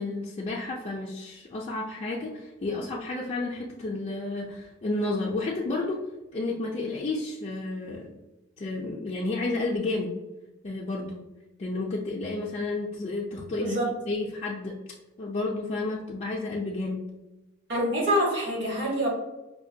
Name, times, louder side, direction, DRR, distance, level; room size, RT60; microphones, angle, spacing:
voice 1, 0.0-6.0 6.3-8.1 8.6-10.1 10.6-11.2 11.6-13.8 14.1-14.8 15.2-17.0, left 2 dB, 35° left, -4 dB, 0.4 m, -31 dB
voice 2, 13.6-13.9 17.7-19.1, equal, 60° right, -3 dB, 1.4 m, -26 dB
4.9 x 2.2 x 2.7 m, 1.0 s
head